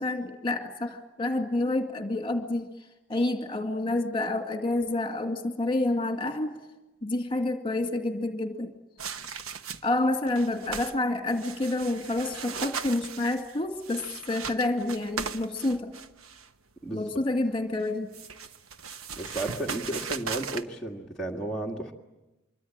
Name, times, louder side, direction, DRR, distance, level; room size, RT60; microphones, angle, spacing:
voice 1, 0.0-2.7 3.1-6.6 7.0-8.7 9.8-15.9 16.9-18.1, left 2 dB, 25° left, 5 dB, 2.2 m, -28 dB
sound 1, 9.0-10.0 10.3-11.0 11.3-16.5 17.8-20.6, right 6 dB, 90° right, 1.1 m, -38 dB
voice 2, 19.2-21.9, right 1 dB, 5° left, -4 dB, 1.7 m, -33 dB
25.5 x 23.5 x 8.8 m, 1.0 s
head